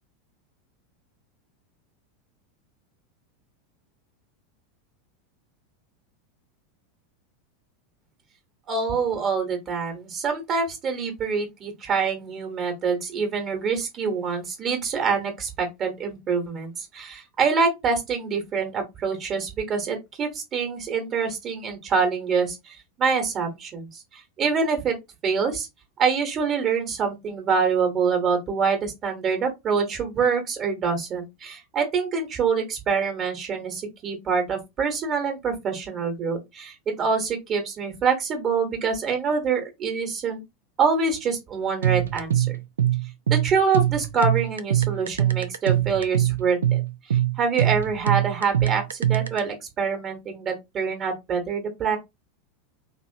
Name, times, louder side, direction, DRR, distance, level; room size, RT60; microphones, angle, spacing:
voice 1, 8.7-25.0 25.2-25.7 26.0-40.4 40.8-42.5 43.3-46.8 47.1-52.0, right 5 dB, 30° right, 1.2 m, -25 dB
sound 1, 41.8-49.4, right 12 dB, 70° right, 0.3 m, -23 dB
3.0 x 2.9 x 2.7 m
figure-of-eight pair, 85°, 0 cm